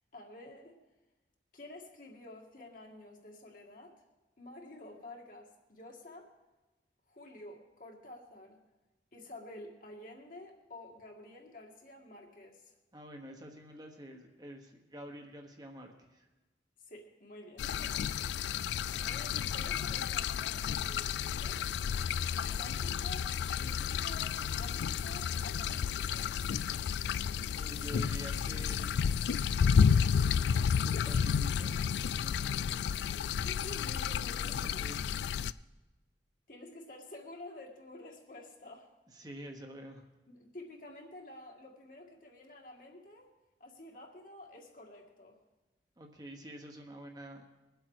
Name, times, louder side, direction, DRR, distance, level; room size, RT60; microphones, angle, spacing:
voice 1, 0.1-0.8 1.5-4.0 4.4-6.3 7.1-8.6 9.1-12.7 16.8-18.3 18.9-21.7 22.4-26.3 32.4-32.6 33.1-34.9 36.5-38.9 40.3-43.3 43.6-45.4, left 2 dB, 50° left, 1 dB, 1.9 m, -50 dB
voice 2, 12.9-16.3 27.5-29.1 30.8-32.9 34.5-35.0 39.1-40.1 46.0-47.5, equal, 25° right, 3 dB, 1.2 m, -48 dB
sound 1, 17.6-35.5, left 7 dB, 75° left, 0.3 m, -31 dB
21.5 x 7.9 x 4.8 m, 1.1 s
head